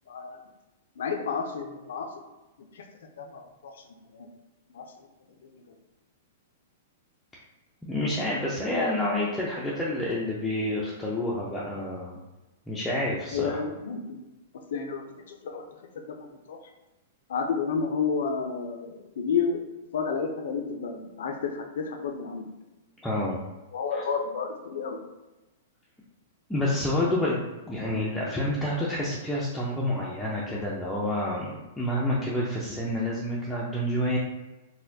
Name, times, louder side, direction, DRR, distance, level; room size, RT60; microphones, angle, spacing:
voice 1, 0.1-0.4 1.0-2.1 2.7-2.8 3.2-3.7 4.1-4.3 4.7-4.8 5.5-5.7 13.3-14.2 14.7-15.6 16.1-16.6 17.3-19.6 19.9-22.4 23.7-25.0, left 5 dB, 75° left, 4 dB, 0.5 m, -31 dB
voice 2, 7.8-12.2 12.7-13.6 23.0-23.4 26.5-34.2, left 1 dB, 5° left, -6 dB, 0.4 m, -28 dB
4.1 x 2.2 x 2.7 m, 1.1 s
hypercardioid pair, 150°, 0 cm